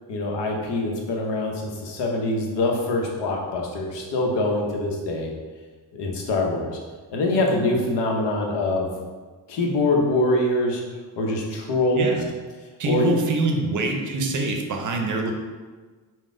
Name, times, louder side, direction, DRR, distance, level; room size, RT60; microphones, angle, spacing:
voice 1, 0.1-5.3 5.9-6.8 7.1-8.9 9.5-10.8 11.2-12.2 12.8-13.1, left 2 dB, 85° left, 0 dB, 0.8 m, -24 dB
voice 2, 12.0-12.3 12.8-15.3, right 2 dB, 50° right, 3 dB, 0.5 m, -25 dB
3.9 x 2.2 x 3.6 m, 1.4 s
wide cardioid pair, 155°, 41 cm